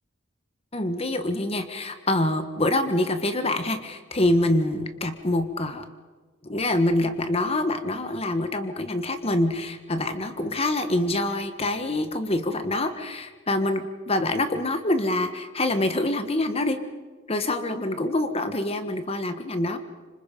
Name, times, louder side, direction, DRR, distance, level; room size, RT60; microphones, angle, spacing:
voice 1, 0.7-5.8 6.5-16.8 17.3-19.8, left 1 dB, 30° left, 9 dB, 1.5 m, -25 dB
26.5 x 25.5 x 5.4 m, 1.3 s
head